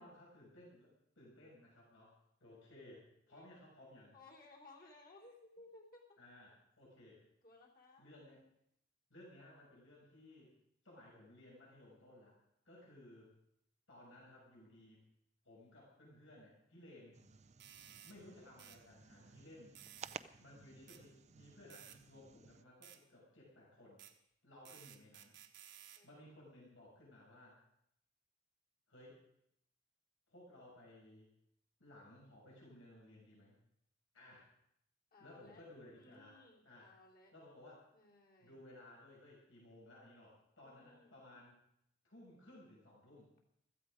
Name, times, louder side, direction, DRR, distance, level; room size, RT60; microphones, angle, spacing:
voice 1, 0.0-4.2 6.2-7.2 8.0-8.4 9.1-10.5 10.8-12.3 12.6-13.3 13.9-15.1 15.4-17.2 18.0-19.8 20.4-24.0 24.4-25.4 26.0-27.6 28.9-29.2 30.3-31.3 31.8-33.6 34.1-34.5 35.2-36.9 37.3-37.9 38.4-41.6 42.0-43.3, left 1 dB, 80° left, -4 dB, 6.6 m, -59 dB
voice 2, 4.1-6.2 7.4-8.1 12.9-13.1 25.9-26.3 35.1-35.6 35.9-37.3 37.9-38.6 40.6-41.2, left 2 dB, 50° left, -2 dB, 3.2 m, -61 dB
sound 1, 17.1-22.6, right 6 dB, 35° right, 0.5 m, -56 dB
sound 2, 17.6-18.2 18.6-18.8 19.8-20.2 20.9-21.0 21.7-22.0 22.8-23.0 24.0-24.1 24.7-26.0, right 10 dB, 60° right, 1.3 m, -57 dB
16.0 x 14.0 x 5.1 m, 0.75 s
head